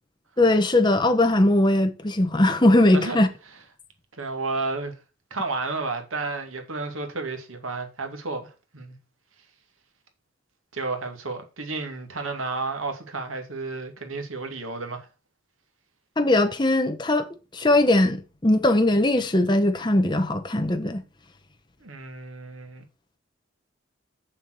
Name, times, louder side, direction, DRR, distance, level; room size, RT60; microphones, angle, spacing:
voice 1, 0.4-3.3 16.2-17.3 17.5-21.0, left 1 dB, 20° left, 0.9 m, -20 dB
voice 2, 4.2-4.9 5.3-9.0 10.7-15.1 21.8-22.8, right 3 dB, 90° right, 2.4 m, -32 dB
7.1 x 7.1 x 6.3 m
head